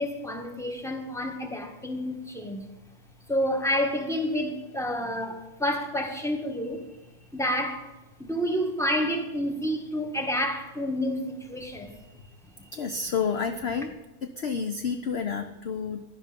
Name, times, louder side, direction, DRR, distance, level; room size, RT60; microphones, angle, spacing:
voice 1, 0.0-2.7 3.3-6.8 7.3-7.9 8.2-11.9, equal, ahead, 1.7 m, -29 dB
voice 2, 12.7-13.9 14.4-16.0, left 6 dB, 50° left, 0.9 m, -29 dB
17.0 x 12.0 x 5.3 m
omnidirectional pair, 1.6 m